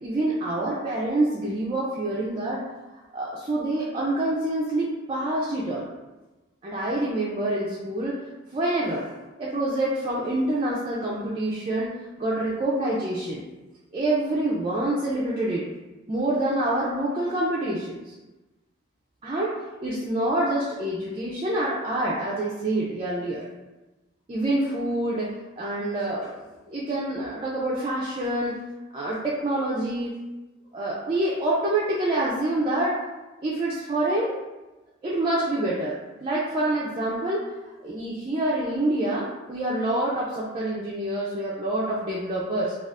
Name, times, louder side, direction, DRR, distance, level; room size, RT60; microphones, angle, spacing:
voice 1, 0.0-2.6 2.9-5.9 6.6-8.2 8.5-9.0 9.4-11.9 12.2-13.4 13.9-15.6 16.1-18.1 19.2-19.5 19.8-23.4 24.3-26.3 26.7-28.5 28.9-30.1 30.7-32.9 33.4-34.3 35.0-36.0 36.2-37.4 37.8-42.7, right 1 dB, 25° right, -6 dB, 0.3 m, -26 dB
2.4 x 2.3 x 3.4 m, 1.1 s
head